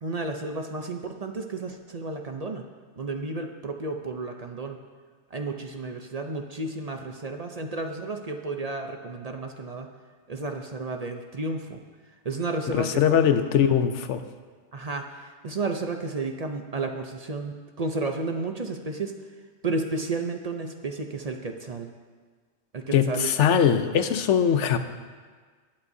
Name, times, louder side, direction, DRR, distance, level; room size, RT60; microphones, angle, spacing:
voice 1, 0.0-2.6 3.0-4.8 5.3-9.9 10.3-11.8 12.2-13.2 13.6-13.8 14.7-19.1 19.6-21.9 22.7-23.3, right 3 dB, 40° right, 4 dB, 0.6 m, -32 dB
voice 2, 12.7-14.2 22.9-24.8, left 8 dB, 85° left, 9 dB, 1.0 m, -21 dB
20.0 x 8.7 x 2.7 m, 1.5 s
omnidirectional pair, 1.2 m